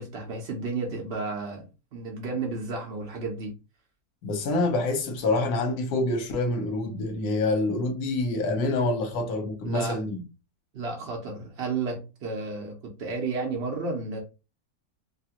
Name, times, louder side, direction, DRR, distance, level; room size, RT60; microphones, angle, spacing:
voice 1, 0.0-3.5 9.6-10.0 10.7-14.2, right 3 dB, 70° right, 0.6 m, -32 dB
voice 2, 4.2-10.2, left 2 dB, 60° left, 1.2 m, -26 dB
3.0 x 2.4 x 2.8 m
omnidirectional pair, 2.0 m